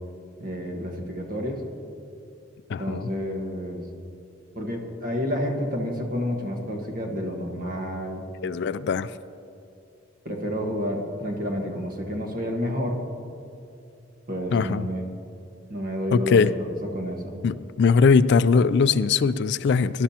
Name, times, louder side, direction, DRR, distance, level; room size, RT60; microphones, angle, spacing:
voice 1, 0.4-1.6 2.8-3.8 4.5-8.3 10.2-13.0 14.3-15.0 15.7-17.3, equal, 45° right, 2 dB, 1.5 m, -30 dB
voice 2, 2.7-3.1 8.4-9.1 14.5-14.9 16.1-16.5 17.4-20.0, left 5 dB, 60° left, 15 dB, 0.3 m, -20 dB
20.0 x 11.5 x 2.9 m, 2.6 s
head